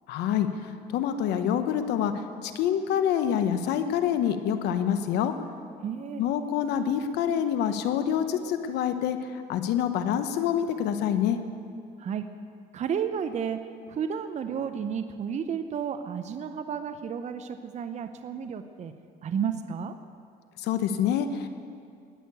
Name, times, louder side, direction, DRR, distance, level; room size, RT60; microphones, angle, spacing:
voice 1, 0.1-0.5 0.9-5.3 6.2-9.2 9.5-11.4 20.6-21.5, left 9 dB, 85° left, 9 dB, 1.0 m, -26 dB
voice 2, 5.8-6.2 12.0-12.3 12.7-18.9 19.2-19.9, right 7 dB, 45° right, 9 dB, 0.7 m, -32 dB
19.0 x 6.6 x 8.4 m, 2.3 s
cardioid pair, 110°, 17 cm